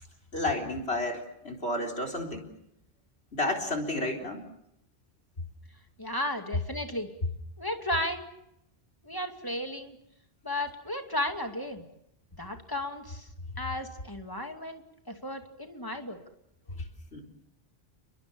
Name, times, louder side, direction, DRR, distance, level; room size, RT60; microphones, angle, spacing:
voice 1, 0.3-2.5 3.3-4.5 16.7-16.9 17.1-17.3, left 2 dB, 80° left, 2 dB, 4.2 m, -31 dB
voice 2, 6.0-7.1 7.6-8.3 9.0-10.0 10.4-11.9 12.4-13.3 13.6-14.8 15.1-16.2, left 1 dB, 20° left, 5 dB, 2.5 m, -34 dB
30.0 x 21.5 x 7.1 m, 0.82 s
omnidirectional pair, 1.1 m